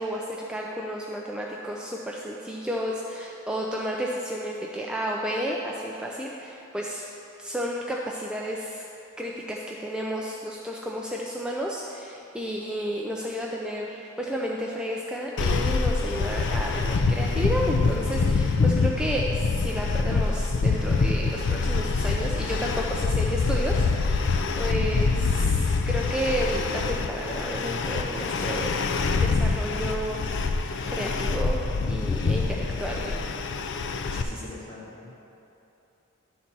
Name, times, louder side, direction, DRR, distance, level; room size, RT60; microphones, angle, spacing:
voice 1, 0.0-7.1 7.4-8.8 9.2-25.6 25.9-28.8 29.2-30.2 30.6-33.1 34.1-34.5, equal, 5° right, -3 dB, 0.4 m, -32 dB
sound 1, 15.4-34.2, left 4 dB, 55° left, 0.4 m, -25 dB
voice 2, 25.0-25.5 32.6-33.3 34.3-35.1, left 2 dB, 35° left, -6 dB, 1.8 m, -40 dB
11.0 x 4.1 x 5.9 m, 2.9 s
head